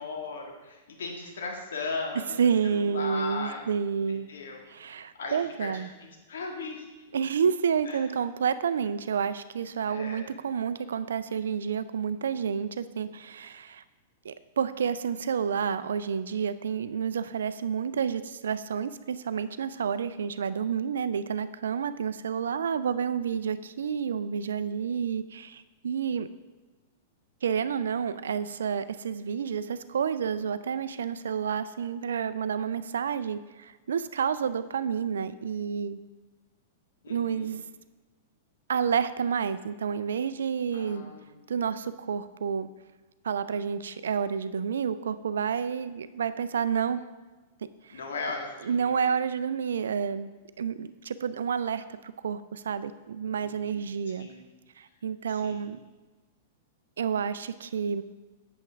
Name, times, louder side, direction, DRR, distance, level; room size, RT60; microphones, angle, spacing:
voice 1, 0.0-2.4 2.7-3.7 4.1-4.6 5.1-5.7 6.0-7.2 7.8-8.1 9.9-10.3 37.0-37.6 40.7-41.5 47.9-49.1 53.2-53.9 54.2-54.4 55.3-55.8, left 3 dB, 70° left, 0 dB, 1.8 m, -38 dB
voice 2, 2.4-4.3 4.7-5.9 7.1-13.8 14.2-26.3 27.4-36.0 37.1-37.6 38.7-41.1 41.5-42.7 43.2-47.0 47.8-48.0 48.6-50.3 50.6-54.3 54.8-55.8 57.0-58.0, right 7 dB, 70° right, 13 dB, 0.4 m, -29 dB
8.3 x 7.2 x 3.4 m, 1.3 s
figure-of-eight pair, 105°, 0 cm